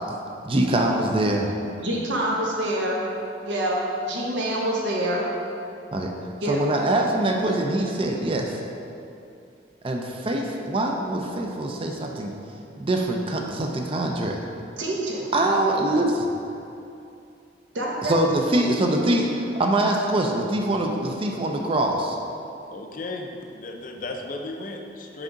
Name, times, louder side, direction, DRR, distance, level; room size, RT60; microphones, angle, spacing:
voice 1, 0.4-1.5 5.9-6.1 6.5-8.6 9.8-12.3 12.8-14.4 15.3-16.2 18.0-19.3 19.6-22.2, right 1 dB, 30° right, 2 dB, 0.4 m, -23 dB
voice 2, 1.8-3.1 3.4-5.3 6.4-6.6 14.8-15.3 17.7-18.2, right 1 dB, 85° right, -3 dB, 1.0 m, -26 dB
voice 3, 22.7-25.2, left 2 dB, 45° left, 2 dB, 0.5 m, -35 dB
6.0 x 4.6 x 3.9 m, 2.7 s
head